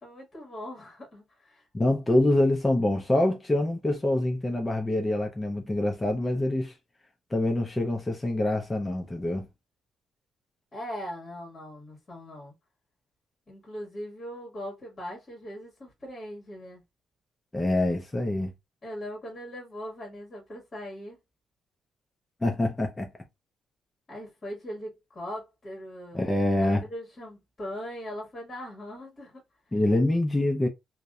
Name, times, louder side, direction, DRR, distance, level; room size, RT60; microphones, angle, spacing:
voice 1, 0.0-1.6 10.7-12.5 13.5-16.8 18.8-21.2 24.1-26.2 26.6-29.4, equal, 35° left, 1.2 m, -40 dB
voice 2, 1.7-6.7 7.3-9.5 17.5-18.5 22.4-23.1 26.1-26.9 29.7-30.7, left 1 dB, 15° left, 0.5 m, -25 dB
2.6 x 2.1 x 2.3 m
cardioid pair, 90°, 0 cm